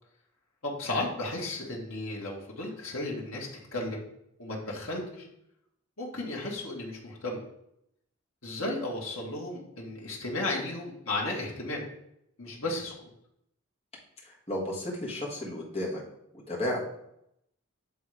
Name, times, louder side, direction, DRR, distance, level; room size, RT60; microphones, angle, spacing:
voice 1, 0.6-4.0 4.4-5.3 6.0-7.4 8.4-11.8 12.4-13.1, left 2 dB, 70° left, -2 dB, 1.6 m, -34 dB
voice 2, 14.5-16.0 16.5-16.8, left 1 dB, 25° left, -4 dB, 1.7 m, -32 dB
8.2 x 3.6 x 4.9 m, 0.78 s
head